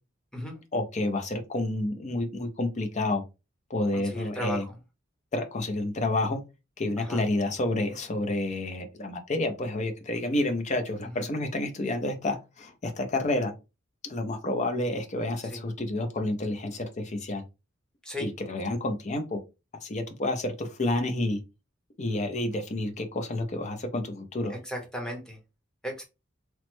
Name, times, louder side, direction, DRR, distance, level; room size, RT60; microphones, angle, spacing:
voice 1, 0.7-3.2 3.7-4.6 5.3-6.4 6.8-13.5 14.0-17.4 18.2-19.4 19.8-21.4 22.0-24.6, left 2 dB, 35° left, 0.6 m, -29 dB
voice 2, 3.9-4.8 7.0-7.2 11.1-11.3 15.4-15.6 18.0-18.3 24.5-25.4 25.8-26.0, equal, 5° left, 0.8 m, -36 dB
3.1 x 2.0 x 3.0 m
head